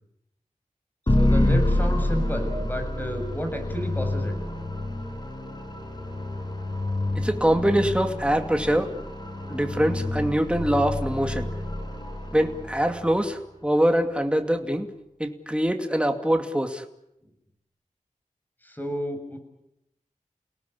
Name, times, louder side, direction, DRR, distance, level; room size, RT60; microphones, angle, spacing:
sound 1, 1.1-13.2, left 1 dB, 35° left, 6.3 m, -28 dB
voice 1, 1.1-4.4 18.6-19.4, equal, 15° left, 5 dB, 7.0 m, -31 dB
voice 2, 7.2-8.9 9.5-11.5 12.3-14.9 15.2-16.8, right 1 dB, 10° right, 5 dB, 2.5 m, -23 dB
29.5 x 18.0 x 8.6 m, 0.85 s
wide cardioid pair, 55°, 13 cm